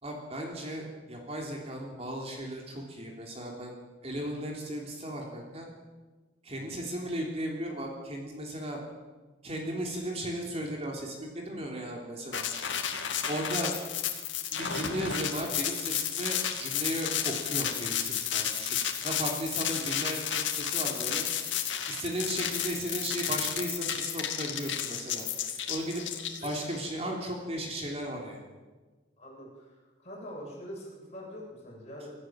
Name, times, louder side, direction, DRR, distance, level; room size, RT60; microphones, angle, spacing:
voice 1, 0.0-3.8 4.0-5.7 6.4-8.8 9.4-12.4 13.3-13.8 14.5-21.3 21.9-25.3 25.7-26.0 26.4-28.4, right 1 dB, 30° right, 0 dB, 3.4 m, -35 dB
sound 1, 12.3-26.8, left 9 dB, 75° left, 2.4 m, -32 dB
voice 2, 29.2-29.7 30.0-32.1, equal, 35° left, -3 dB, 7.6 m, -44 dB
26.5 x 14.0 x 7.6 m, 1.3 s
head